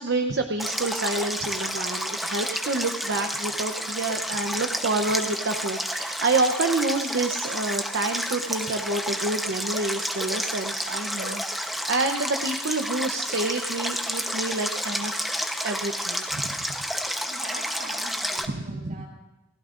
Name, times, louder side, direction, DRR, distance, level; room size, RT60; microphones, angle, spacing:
voice 1, 0.0-15.3 15.6-16.5 18.5-19.1, right 2 dB, 80° right, 5 dB, 0.8 m, -28 dB
Stream, 0.6-18.4, equal, ahead, 0.9 m, -30 dB
voice 2, 17.3-19.1, right 1 dB, 55° right, -3 dB, 6.0 m, -42 dB
28.5 x 15.5 x 2.5 m, 1.0 s
head